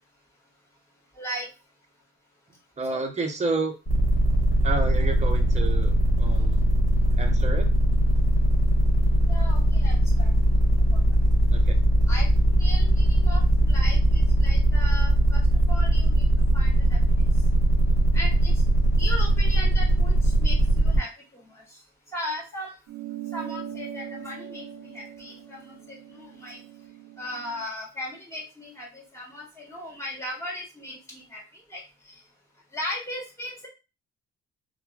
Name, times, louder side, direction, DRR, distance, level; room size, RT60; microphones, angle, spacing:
voice 1, 1.1-1.5 2.9-3.0 9.3-10.3 10.9-11.0 12.1-12.3 12.6-15.4 15.7-16.3 16.5-17.3 18.1-18.6 19.0-21.8 22.1-22.8 23.3-26.6 27.2-32.2 32.7-33.7, left 1 dB, 10° left, -4 dB, 1.5 m, -37 dB
voice 2, 2.8-3.7 4.6-6.7 7.2-7.7 11.5-11.8, right 3 dB, 25° right, 3 dB, 0.7 m, -30 dB
sound 1, 3.9-21.0, right 1 dB, 45° left, 1.3 m, -21 dB
sound 2, 22.9-27.7, right 10 dB, 70° right, 0.5 m, -40 dB
2.9 x 2.2 x 2.4 m, 0.29 s
cardioid pair, 90°, 30 cm